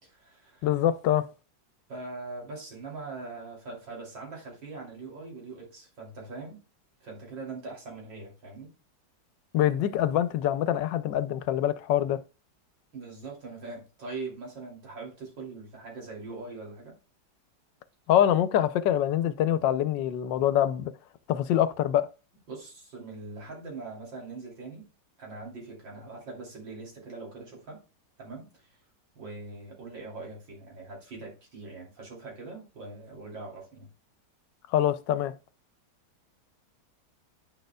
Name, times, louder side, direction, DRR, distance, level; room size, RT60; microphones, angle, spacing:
voice 1, 0.0-0.8 1.9-6.6 7.0-8.7 12.9-16.9 22.5-24.9 25.2-27.8 28.2-28.8 29.1-33.9, right 3 dB, 80° right, 3.5 m, -42 dB
voice 2, 0.6-1.3 9.5-12.2 18.1-20.9 21.3-22.1 34.7-35.3, left 11 dB, 80° left, 1.3 m, -25 dB
9.8 x 6.5 x 2.2 m
omnidirectional pair, 2.0 m